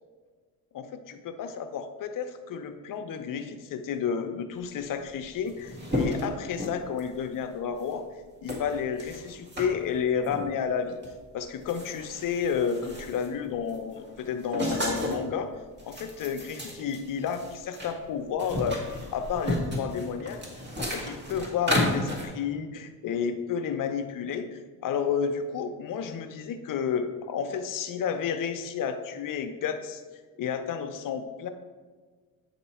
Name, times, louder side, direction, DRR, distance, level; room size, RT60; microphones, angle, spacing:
voice 1, 0.7-8.0 8.4-11.0 11.3-15.5 15.8-20.4 20.8-30.0 30.4-31.5, left 7 dB, 60° left, 7 dB, 0.7 m, -31 dB
sound 1, 5.0-5.1 5.3-7.2 7.8-8.0 8.5-9.7 10.2-10.5 11.0-11.2 11.5-13.4 13.7-15.3 15.7-17.9 18.2-22.3, left 1 dB, 30° right, 1.8 m, -33 dB
8.8 x 3.0 x 4.3 m, 1.5 s
supercardioid pair, 75°, 37 cm